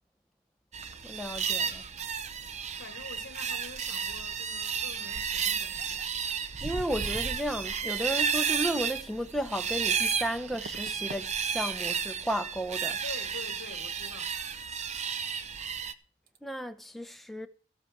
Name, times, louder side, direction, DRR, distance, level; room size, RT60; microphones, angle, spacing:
sound 1, 0.7-15.9, right 7 dB, 35° right, 0.7 m, -32 dB
voice 1, 1.0-1.8 6.6-13.0 16.4-17.5, right 1 dB, ahead, 0.8 m, -34 dB
voice 2, 2.8-6.1 13.0-14.3, left 3 dB, 60° left, 1.1 m, -46 dB
sound 2, 10.5-11.3 11.6-12.0 12.3-12.4 15.4-15.5 15.7-16.0 16.3-16.4, right 2 dB, 55° right, 1.1 m, -47 dB
15.0 x 8.2 x 6.1 m
head